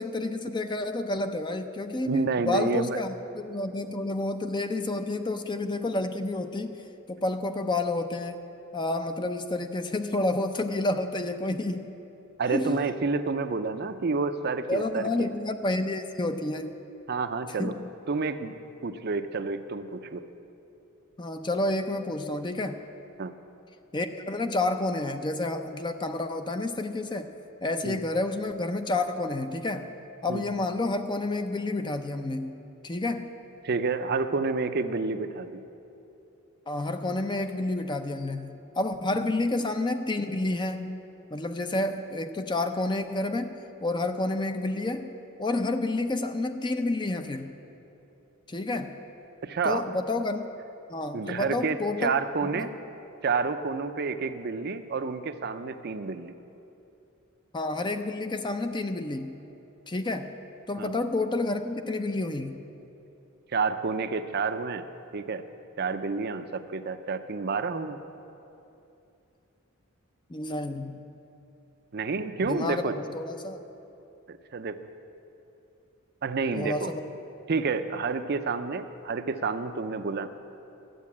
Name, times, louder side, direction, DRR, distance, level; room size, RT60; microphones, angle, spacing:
voice 1, 0.0-6.8 7.1-8.4 8.7-11.9 12.5-12.8 14.7-16.8 17.6-17.9 21.2-22.8 23.9-27.3 27.6-29.9 30.2-33.3 36.7-41.0 41.3-45.1 45.4-47.5 48.5-49.0 49.6-50.5 50.9-52.1 52.4-52.7 54.1-54.2 57.5-59.4 59.9-60.3 60.7-62.6 70.3-71.0 72.4-73.6 76.5-77.0, left 2 dB, 20° left, 7 dB, 0.5 m, -30 dB
voice 2, 2.0-3.0 12.4-15.3 17.1-17.8 18.1-18.5 18.8-20.2 23.2-23.3 27.8-28.0 30.3-30.4 33.6-35.6 49.4-49.9 51.1-52.7 53.2-56.3 60.8-60.9 63.5-64.8 65.1-65.4 65.8-68.0 71.9-73.0 74.3-74.8 76.2-76.9 77.5-80.3, right 4 dB, 50° right, 9 dB, 0.5 m, -29 dB
12.5 x 8.4 x 8.5 m, 2.8 s
head